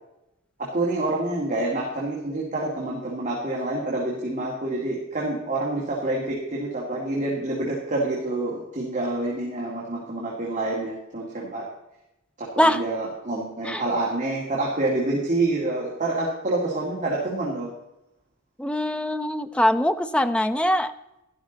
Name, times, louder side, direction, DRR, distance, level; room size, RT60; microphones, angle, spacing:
voice 1, 0.6-11.7 12.4-17.7, right 2 dB, 35° right, -4 dB, 2.1 m, -27 dB
voice 2, 18.6-20.9, left 1 dB, 5° left, 10 dB, 0.4 m, -22 dB
12.0 x 11.5 x 3.9 m, 0.91 s
head